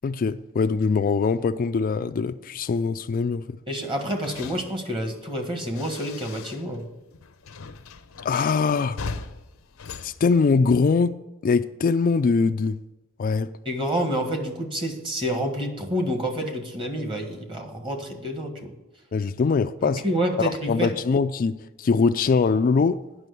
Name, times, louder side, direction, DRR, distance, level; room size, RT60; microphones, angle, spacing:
voice 1, 0.0-3.4 8.2-9.0 10.0-11.2 11.4-12.8 13.2-13.5 19.1-20.0 20.4-23.0, left 4 dB, 45° left, 0.3 m, -22 dB
voice 2, 3.7-6.8 13.6-18.7 20.0-20.9, equal, 25° right, 1.6 m, -28 dB
sound 1, 3.9-6.9 7.1-11.0, left 4 dB, 85° left, 0.7 m, -40 dB
9.2 x 6.1 x 8.0 m
head